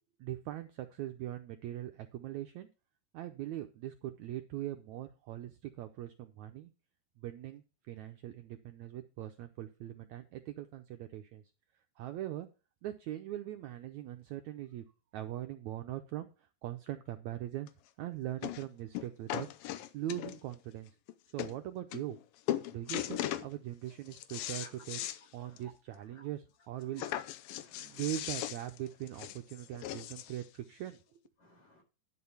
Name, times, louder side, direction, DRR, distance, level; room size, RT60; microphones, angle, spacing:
voice 1, 0.2-2.7 3.1-6.7 7.2-11.4 12.0-12.5 12.8-14.8 15.1-17.7 18.0-19.5 19.9-20.9 21.3-22.2 22.7-25.0 25.3-27.0 27.8-31.2, right 13 dB, 80° right, 1.7 m, -41 dB
sound 1, 17.7-17.8 18.4-18.7 18.9-20.6 21.1-21.2 21.4-21.6 21.9-22.2 22.5-23.5 23.9-25.2 25.6-25.7 26.0-26.1 27.0-30.4 31.3-31.4, left 13 dB, 85° left, 2.5 m, -38 dB
voice 2, 27.5-28.0 31.4-31.8, equal, 55° left, 6.4 m, -58 dB
11.5 x 5.1 x 5.6 m
omnidirectional pair, 4.1 m